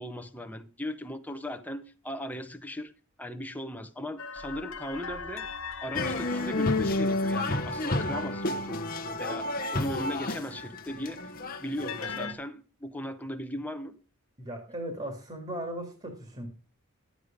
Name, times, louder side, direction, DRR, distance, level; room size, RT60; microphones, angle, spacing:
voice 1, 0.0-2.9 3.2-5.5 5.8-11.3 11.6-13.9, left 1 dB, 5° left, 0.8 m, -38 dB
sound 1, 4.2-10.4 11.9-12.3, left 5 dB, 60° left, 1.1 m, -42 dB
sound 2, 5.9-12.3, left 2 dB, 40° left, 0.9 m, -30 dB
voice 2, 14.4-16.5, right 1 dB, 30° right, 2.1 m, -37 dB
11.5 x 8.2 x 5.1 m
head